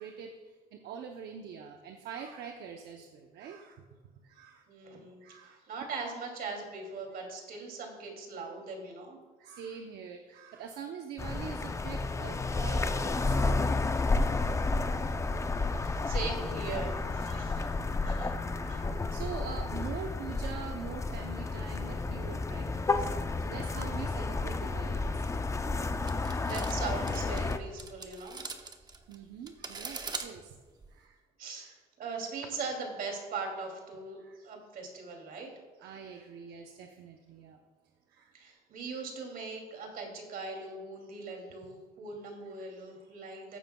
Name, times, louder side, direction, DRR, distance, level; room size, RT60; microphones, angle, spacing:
voice 1, 0.0-3.8 4.2-4.6 5.2-5.6 9.4-15.1 18.5-23.1 23.4-25.4 29.1-30.6 30.9-31.2 31.6-31.7 34.2-34.4 35.8-37.6 38.1-38.3 38.9-39.0 41.3-41.4 42.6-42.7 43.3-43.4, right 7 dB, 75° right, 4 dB, 0.8 m, -44 dB
voice 2, 4.7-9.2 15.3-18.4 18.7-18.8 26.2-28.4 31.4-35.5 38.3-43.6, right 4 dB, 60° right, 2 dB, 2.7 m, -40 dB
sound 1, 11.2-27.6, left 3 dB, 15° left, 0.5 m, -31 dB
sound 2, 26.0-31.0, right 4 dB, 25° right, 0.9 m, -42 dB
15.0 x 9.0 x 2.3 m, 1.3 s
cardioid pair, 110°, 17 cm